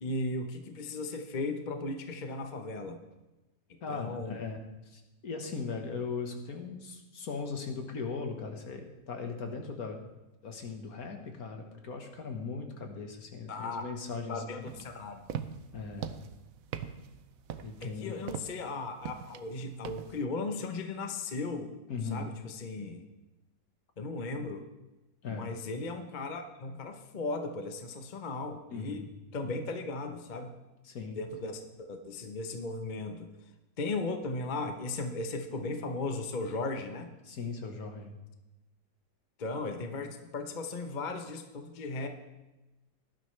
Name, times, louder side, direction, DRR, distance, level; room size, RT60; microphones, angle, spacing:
voice 1, 0.0-3.0 3.9-4.4 13.5-13.8 14.3-15.2 17.8-21.8 22.1-23.0 24.0-24.6 25.3-29.1 29.3-30.5 31.1-33.3 33.8-37.1 39.4-42.1, left 3 dB, 35° left, 6 dB, 0.8 m, -36 dB
voice 2, 3.8-10.0 10.4-14.7 15.7-16.1 17.6-18.1 21.9-22.3 25.2-25.5 28.7-29.1 30.8-31.6 37.2-38.2, left 4 dB, 60° left, 4 dB, 1.7 m, -39 dB
sound 1, 14.7-20.2, right 9 dB, 65° right, 0.9 m, -41 dB
18.0 x 11.5 x 3.3 m, 1.0 s
omnidirectional pair, 1.9 m